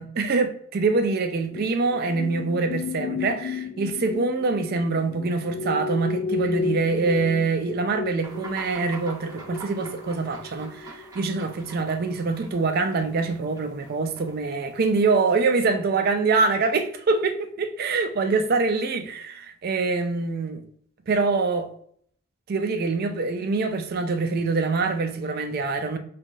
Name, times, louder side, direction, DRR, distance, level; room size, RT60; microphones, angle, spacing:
voice 1, 0.0-20.6 21.1-21.7 22.5-26.0, right 4 dB, 45° right, 0.4 m, -25 dB
sound 1, 1.5-11.8 12.1-12.3, left 4 dB, 60° left, 0.4 m, -33 dB
sound 2, 8.2-15.7, right 3 dB, 15° right, 1.3 m, -45 dB
3.4 x 2.2 x 2.5 m
head